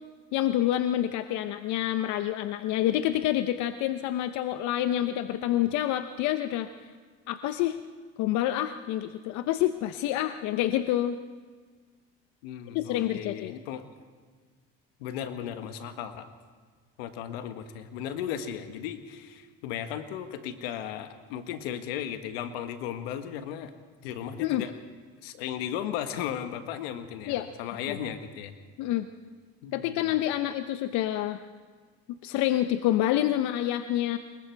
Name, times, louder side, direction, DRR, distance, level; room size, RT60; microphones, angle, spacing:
voice 1, 0.3-6.7 7.3-7.8 8.2-11.2 12.7-13.5 24.4-24.6 27.3-27.5 27.9-28.0 28.8-29.1 29.7-31.4 32.2-34.2, left 13 dB, 70° left, 10 dB, 0.8 m, -27 dB
voice 2, 12.4-13.8 15.0-16.3 17.0-23.7 24.0-24.7 25.2-28.5 29.6-30.2, left 9 dB, 90° left, 8 dB, 1.5 m, -36 dB
27.0 x 22.0 x 4.6 m, 1.5 s
supercardioid pair, 90°, 30 cm